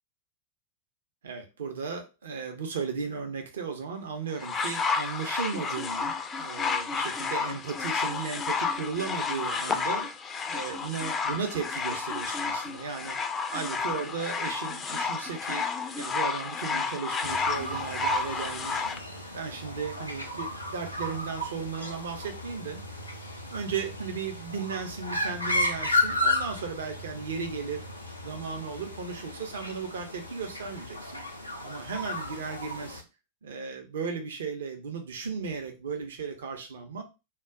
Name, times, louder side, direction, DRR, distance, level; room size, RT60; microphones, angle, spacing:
voice 1, 1.2-10.1 10.5-13.2 13.5-15.7 16.0-18.9 19.3-22.8 23.5-27.8 28.2-31.2 31.6-33.0 33.4-37.0, right 5 dB, 65° right, 4 dB, 0.6 m, -35 dB
sound 1, 4.4-19.0 19.9-20.0, left 5 dB, 20° left, 0.3 m, -31 dB
sound 2, 17.2-33.0, left 1 dB, 85° left, 0.5 m, -34 dB
2.3 x 2.2 x 3.6 m, 0.28 s
figure-of-eight pair, 90°, 0 cm